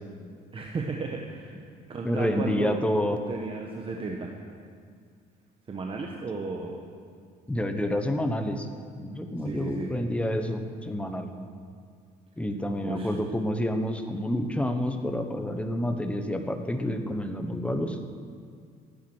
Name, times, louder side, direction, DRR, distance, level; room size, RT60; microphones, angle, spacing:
voice 1, 0.5-1.6 1.9-2.8 3.1-4.3 5.7-6.8 9.4-9.9 12.8-13.2, right 4 dB, 30° right, 1 dB, 1.2 m, -34 dB
voice 2, 2.0-3.2 7.5-8.7 9.0-11.3 12.4-18.0, left 1 dB, 5° left, 6 dB, 1.2 m, -28 dB
15.0 x 9.5 x 6.3 m, 2.2 s
cardioid pair, 110°, 17 cm